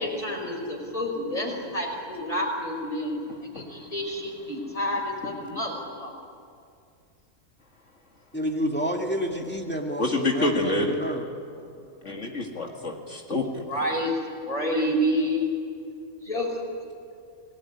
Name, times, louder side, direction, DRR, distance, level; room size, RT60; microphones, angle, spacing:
voice 1, 0.0-3.2 3.5-6.1 13.7-14.1 14.4-15.5 16.3-16.5, equal, 25° left, 0 dB, 5.4 m, -28 dB
voice 2, 3.5-3.9 10.0-11.0 12.0-13.6, left 2 dB, 55° left, 1 dB, 2.3 m, -27 dB
voice 3, 8.3-11.3, equal, 5° left, 1 dB, 2.2 m, -29 dB
28.5 x 19.0 x 9.7 m, 2.4 s
omnidirectional pair, 1.5 m